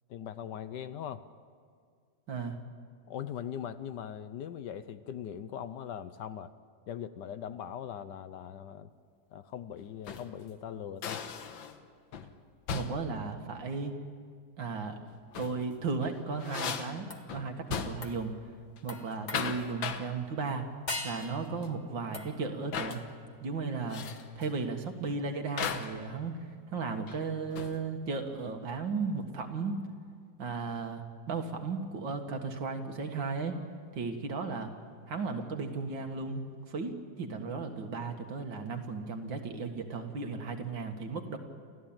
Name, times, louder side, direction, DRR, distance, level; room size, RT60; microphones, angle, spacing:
voice 1, 0.1-1.2 3.1-6.5 6.9-8.9 9.3-11.2, left 9 dB, 70° left, 12 dB, 1.3 m, -40 dB
sound 1, 9.8-10.4 11.0-11.8 12.1-12.3 12.7-13.1 15.1-15.6 16.0-18.2 18.5-18.8 19.1-20.1 21.0-21.4 21.6-21.7 22.7-23.0 23.9-24.3 25.6-26.0 27.1-27.9, left 7 dB, 85° left, 1.9 m, -37 dB
voice 2, 12.7-14.0 14.6-15.0 15.4-18.3 18.8-20.7 21.0-23.0 23.4-24.0 24.4-29.8 30.4-33.6 33.9-34.7 35.1-36.9 37.2-41.4, right 4 dB, 75° right, 5 dB, 2.4 m, -35 dB
sound 2, 17.1-17.4 18.0-18.3 18.9-19.8 20.9-21.5 22.1-22.6 24.4-24.5, left 2 dB, 25° left, 1.9 m, -41 dB
29.5 x 14.0 x 8.9 m, 2.1 s
omnidirectional pair, 2.1 m